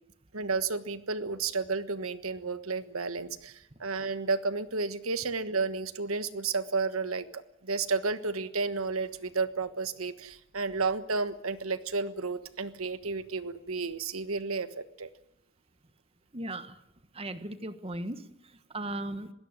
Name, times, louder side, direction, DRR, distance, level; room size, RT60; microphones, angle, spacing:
voice 1, 0.3-15.1, right 4 dB, 85° right, 12 dB, 1.4 m, -32 dB
voice 2, 16.3-16.8 17.1-18.2 18.7-19.3, right 1 dB, 30° right, 11 dB, 1.3 m, -36 dB
21.5 x 16.5 x 9.8 m, 0.81 s
head